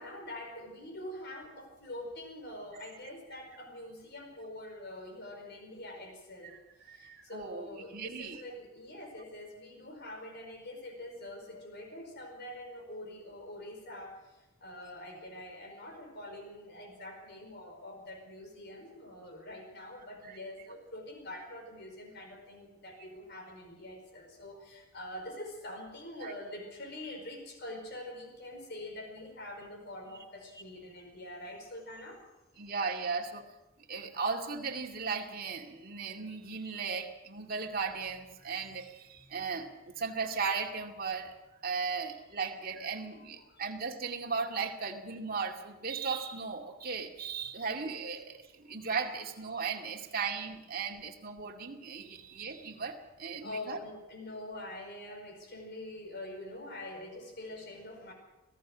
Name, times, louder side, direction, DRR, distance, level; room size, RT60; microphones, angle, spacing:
voice 1, 0.0-32.2 43.2-43.6 44.7-44.8 47.5-47.7 53.4-58.1, left 1 dB, 50° left, 3 dB, 5.0 m, -45 dB
voice 2, 6.8-8.4 20.2-20.4 26.2-26.3 32.6-33.4 33.9-41.3 41.6-53.8, right 5 dB, 40° right, 1 dB, 2.3 m, -36 dB
25.5 x 17.5 x 6.3 m, 0.98 s
head